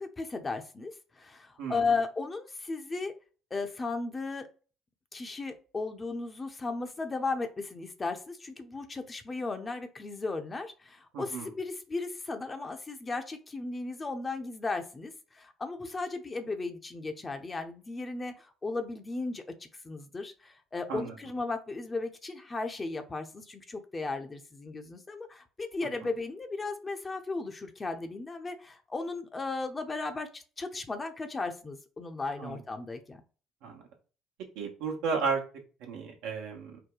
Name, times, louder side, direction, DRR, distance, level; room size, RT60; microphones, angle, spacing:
voice 1, 0.0-3.1 3.5-4.5 5.1-33.2, left 3 dB, 30° left, 6 dB, 0.8 m, -35 dB
voice 2, 11.1-11.5 20.9-21.2 32.4-32.6 33.6-33.8 34.5-35.4 35.8-36.8, right 5 dB, 70° right, 1 dB, 1.1 m, -33 dB
4.7 x 2.2 x 3.9 m, 0.37 s
hypercardioid pair, 50°, 0 cm